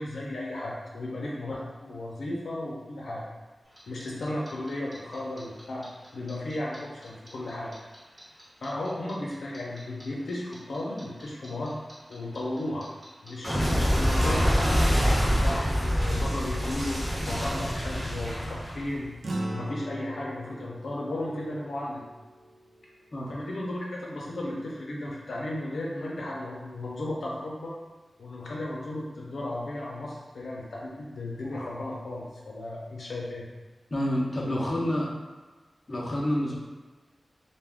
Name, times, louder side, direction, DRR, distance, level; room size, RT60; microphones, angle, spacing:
voice 1, 0.0-3.3 3.9-5.9 6.1-7.8 8.6-11.8 12.1-12.9 13.2-15.0 15.3-19.1 19.5-22.0 23.3-27.7 28.2-33.4, left 1 dB, 85° left, -4 dB, 0.5 m, -35 dB
Clock, 3.8-6.8 7.0-10.0 10.3-19.1, equal, 10° right, 0.7 m, -26 dB
sound 1, 19.2-23.9, right 1 dB, 75° right, 0.3 m, -39 dB
voice 2, 33.9-35.1 35.9-36.5, left 1 dB, 35° left, -4 dB, 0.5 m, -28 dB
2.3 x 2.2 x 3.4 m, 1.3 s
wide cardioid pair, 125°, 0 cm